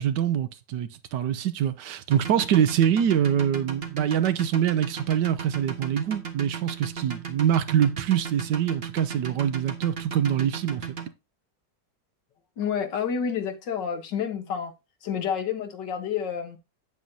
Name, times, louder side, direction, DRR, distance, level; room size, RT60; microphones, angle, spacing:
voice 1, 0.0-10.9, right 9 dB, 80° right, 1.4 m, -24 dB
sound 1, 2.1-11.1, right 7 dB, 35° right, 1.5 m, -36 dB
voice 2, 12.6-14.7 15.0-16.6, left 7 dB, 85° left, 1.9 m, -29 dB
8.9 x 8.2 x 2.7 m
omnidirectional pair, 1.8 m